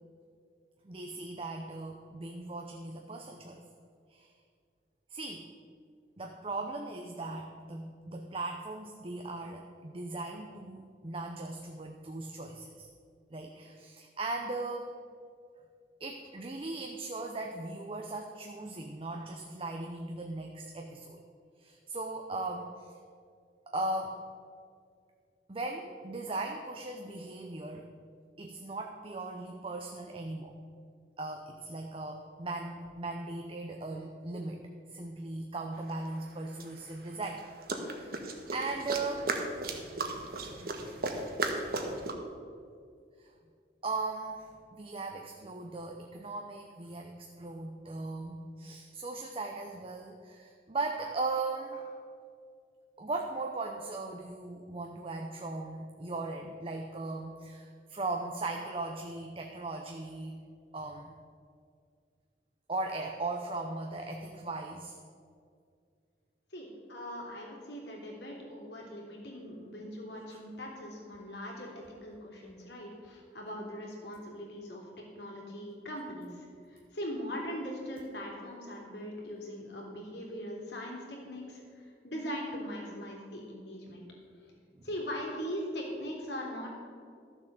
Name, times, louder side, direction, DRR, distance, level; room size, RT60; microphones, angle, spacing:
voice 1, 0.8-3.6 4.1-4.3 5.1-5.5 6.2-12.9 13.3-14.9 16.0-21.2 21.6-22.9 23.7-24.2 25.5-27.9 28.4-30.6 31.2-37.4 37.8-39.3 40.6-40.8 43.2-43.3 43.8-52.1 53.0-60.5 60.7-61.1 62.7-65.0 70.3-70.4 84.7-84.9, right 2 dB, 30° right, 3 dB, 0.7 m, -38 dB
sound 1, 35.9-36.0 36.6-42.1, right 2 dB, 55° right, 1.3 m, -35 dB
voice 2, 66.5-74.9 75.2-84.0 84.8-86.7, equal, 75° left, -1 dB, 3.0 m, -40 dB
12.5 x 7.2 x 6.7 m, 2.3 s
head